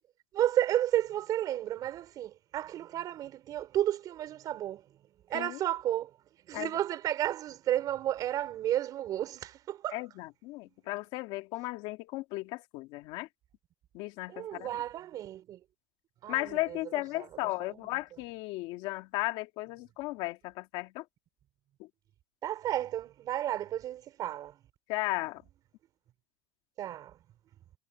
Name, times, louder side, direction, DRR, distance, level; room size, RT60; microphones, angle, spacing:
voice 1, 0.3-4.8 5.3-6.2 6.5-10.0 14.3-15.6 16.2-17.9 22.4-24.6 26.8-27.2, right 12 dB, 35° right, 4.7 m, -32 dB
voice 2, 9.9-13.3 13.9-14.7 16.3-21.0 21.8-21.9 24.9-25.4, left 20 dB, 50° left, 2.1 m, -35 dB
supercardioid pair, 150°, 11 cm